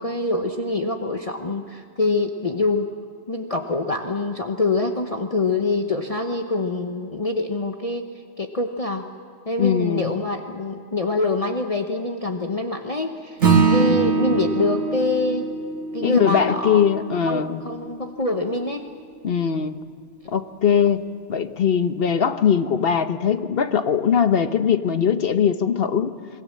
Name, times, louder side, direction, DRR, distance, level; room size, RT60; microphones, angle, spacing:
voice 1, 0.0-2.9 3.3-8.1 8.4-9.1 9.5-15.5 15.9-16.9 17.2-18.8 20.2-20.3 20.7-20.8, left 2 dB, 35° left, 4 dB, 1.0 m, -25 dB
voice 2, 9.6-10.1 13.9-14.1 16.0-17.6 19.2-19.8 20.3-21.0 21.3-26.1, left 7 dB, 60° left, 10 dB, 1.1 m, -21 dB
Acoustic guitar / Strum, 13.4-18.2, right 5 dB, 80° right, 2.4 m, -23 dB
27.0 x 20.5 x 7.4 m, 2.3 s
omnidirectional pair, 1.2 m